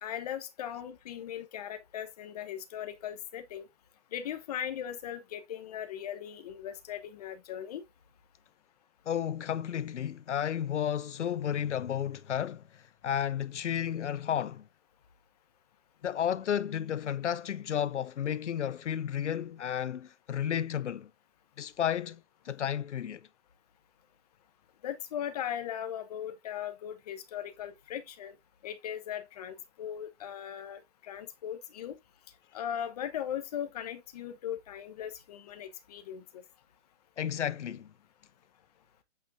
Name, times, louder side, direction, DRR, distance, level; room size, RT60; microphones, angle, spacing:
voice 1, 0.0-3.7 4.1-7.8 24.8-28.4 28.6-32.0 32.5-36.4, left 10 dB, 35° left, 1.2 m, -38 dB
voice 2, 9.1-14.7 16.0-21.1 21.6-23.2 37.2-37.9, left 9 dB, 90° left, 0.6 m, -32 dB
8.0 x 5.6 x 2.8 m
hypercardioid pair, 155°, 34 cm